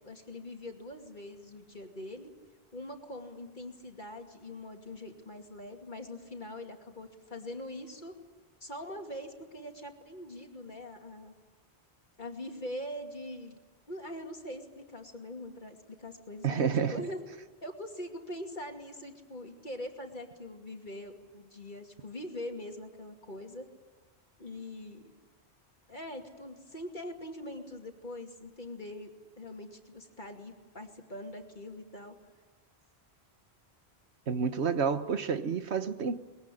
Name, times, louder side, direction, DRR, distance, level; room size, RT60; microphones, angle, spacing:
voice 1, 0.0-2.3 2.7-8.2 8.6-11.3 12.2-13.6 13.9-17.2 17.6-23.7 24.4-25.1 25.9-32.2, left 1 dB, 45° left, 3 dB, 2.7 m, -43 dB
voice 2, 16.4-16.9 34.3-36.2, right 6 dB, 75° right, 11 dB, 1.4 m, -29 dB
22.5 x 21.5 x 9.9 m, 1.3 s
omnidirectional pair, 1.1 m